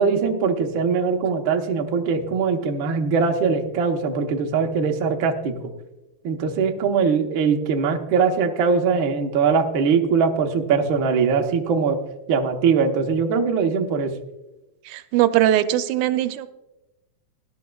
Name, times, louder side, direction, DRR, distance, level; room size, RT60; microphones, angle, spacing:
voice 1, 0.0-5.5 6.2-12.0 12.3-14.1, right 5 dB, 60° right, 3 dB, 1.4 m, -21 dB
voice 2, 14.9-16.5, right 12 dB, 85° right, 10 dB, 2.1 m, -20 dB
19.0 x 11.0 x 2.3 m, 0.97 s
omnidirectional pair, 3.4 m